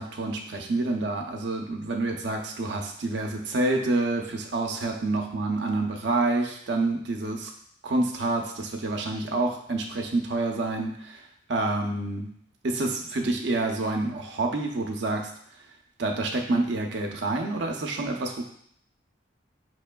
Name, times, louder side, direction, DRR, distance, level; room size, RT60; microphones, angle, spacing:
voice 1, 0.0-7.5 7.8-11.2 11.5-12.3 12.6-15.3 16.0-18.4, right 2 dB, 65° right, 2 dB, 0.6 m, -28 dB
5.0 x 3.1 x 2.2 m, 0.66 s
head